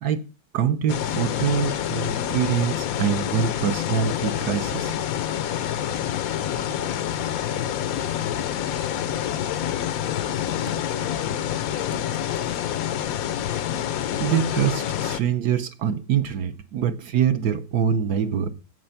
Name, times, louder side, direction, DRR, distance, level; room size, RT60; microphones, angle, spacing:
voice 1, 0.5-5.0 14.2-18.5, right 8 dB, 65° right, 1.2 m, -24 dB
sound 1, 0.9-15.2, left 10 dB, 70° left, 0.9 m, -27 dB
Typing, 1.5-14.9, right 4 dB, 50° right, 1.4 m, -49 dB
voice 2, 7.2-10.4 10.9-12.5 12.7-13.3, left 10 dB, 85° left, 1.6 m, -42 dB
8.0 x 7.7 x 5.8 m
omnidirectional pair, 2.0 m